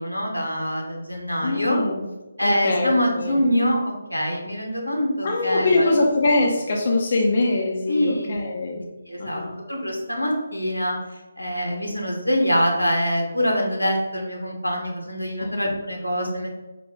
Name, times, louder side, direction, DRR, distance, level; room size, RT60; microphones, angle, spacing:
voice 1, 0.0-1.8 2.4-5.9 7.9-8.3 9.1-9.4 9.7-11.0 11.4-16.5, equal, 85° left, 0 dB, 0.9 m, -24 dB
voice 2, 1.4-2.0 2.4-3.4 5.2-8.8 9.2-9.6 15.4-15.6, left 2 dB, 40° left, 0 dB, 0.5 m, -23 dB
4.0 x 2.2 x 3.5 m, 1.1 s
figure-of-eight pair, 150°, 0 cm